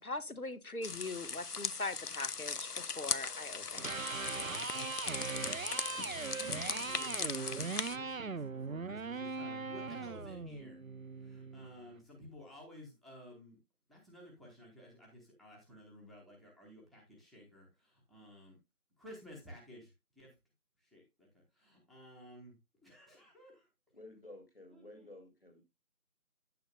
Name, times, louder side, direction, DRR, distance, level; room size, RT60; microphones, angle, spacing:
voice 1, 0.0-3.9 4.1-4.2, left 2 dB, 70° left, 1.4 m, -41 dB
sound 1, 0.8-8.0, left 5 dB, 90° left, 0.8 m, -39 dB
Electric guitar, 3.7-11.8, right 4 dB, 65° right, 0.6 m, -40 dB
voice 2, 5.9-10.8 11.2-13.6 13.9-18.6 19.0-20.3 20.8-21.3 21.5-22.5 22.8-23.7 24.7-25.2, left 1 dB, ahead, 1.2 m, -54 dB
voice 3, 23.9-25.6, left 1 dB, 40° left, 2.4 m, -53 dB
9.8 x 9.2 x 2.2 m
figure-of-eight pair, 175°, 45 cm